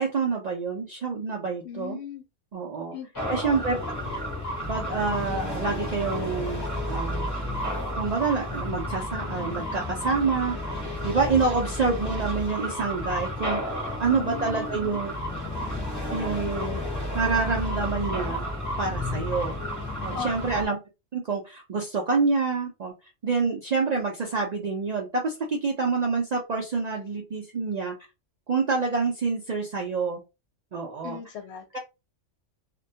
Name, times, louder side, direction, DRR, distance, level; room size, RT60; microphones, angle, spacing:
voice 1, 0.0-2.0 2.5-2.9 3.3-3.8 4.7-7.3 8.0-15.2 16.1-16.8 17.1-18.5 18.8-19.6 20.0-20.8 21.1-22.9 23.2-27.9 28.5-30.2 30.7-31.2, right 4 dB, 65° right, 0 dB, 0.4 m, -27 dB
voice 2, 1.6-2.2 2.9-3.4 14.1-14.8 20.1-20.5 31.0-31.8, left 6 dB, 70° left, 3 dB, 0.8 m, -38 dB
sound 1, 3.2-20.7, left 1 dB, 20° left, 0.5 m, -31 dB
2.2 x 2.2 x 2.7 m, 0.27 s
omnidirectional pair, 1.3 m